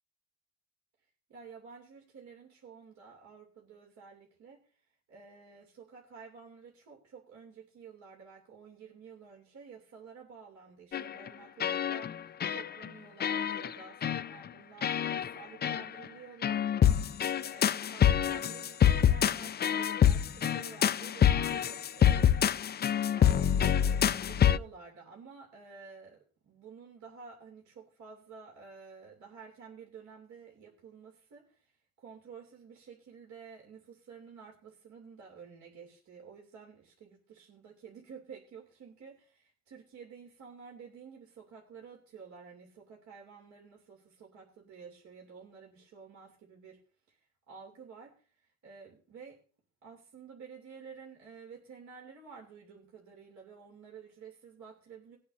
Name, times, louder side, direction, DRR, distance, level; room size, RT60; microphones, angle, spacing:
voice 1, 1.3-4.6 5.1-22.4 23.1-26.2 26.4-31.7 32.0-46.8 47.1-47.2 47.5-49.4 49.8-55.2, right 6 dB, 70° right, -1 dB, 3.0 m, -51 dB
sound 1, 10.9-11.3 11.6-12.2 12.4-12.9 13.2-13.7 14.0-14.3 14.8-15.3 15.6-15.8 16.4-24.6, left 9 dB, 35° left, 0.4 m, -26 dB
20.0 x 8.5 x 2.7 m, 0.39 s
cardioid pair, 90°, 30 cm